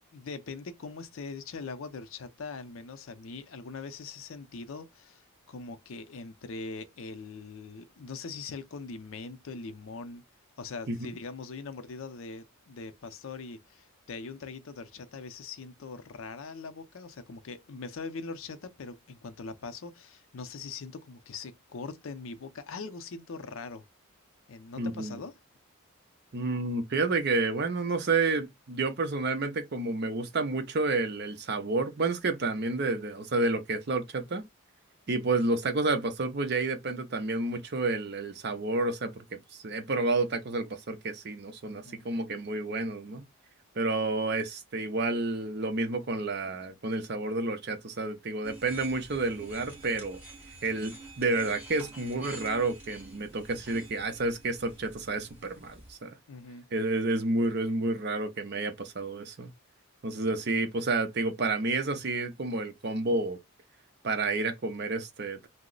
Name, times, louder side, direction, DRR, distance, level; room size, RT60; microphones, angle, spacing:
voice 1, 0.1-10.2 10.6-23.8 24.5-25.4 41.6-42.1 56.3-56.7, left 4 dB, 65° left, 0.5 m, -42 dB
voice 2, 24.8-25.2 26.3-34.4 35.1-43.2 43.8-50.2 50.6-56.1 56.7-59.5 60.0-63.4 64.0-65.5, right 3 dB, 50° right, 0.6 m, -30 dB
sound 1, 48.4-55.9, right 2 dB, 5° right, 0.9 m, -48 dB
2.9 x 2.0 x 3.7 m
head